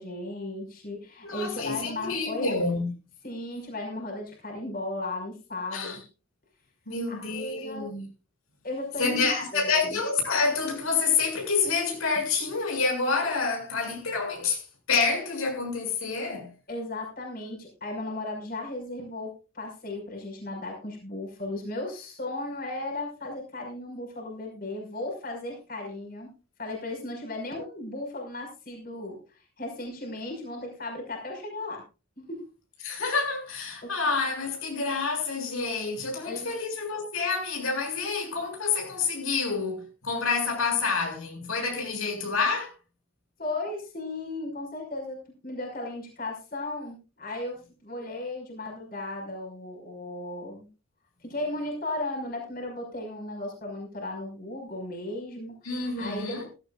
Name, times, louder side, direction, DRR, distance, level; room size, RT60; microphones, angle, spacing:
voice 1, 0.0-2.5 3.2-6.0 7.1-7.9 8.6-10.0 12.2-12.3 16.7-26.3 26.6-31.8 32.2-32.4 33.8-33.9 36.2-36.5 43.4-50.7 51.2-56.5, left 2 dB, 45° left, 5.5 m, -36 dB
voice 2, 1.2-2.9 5.7-6.0 6.9-8.0 9.0-16.5 32.8-42.7 55.6-56.5, left 4 dB, 85° left, 6.8 m, -28 dB
17.0 x 16.5 x 2.5 m
head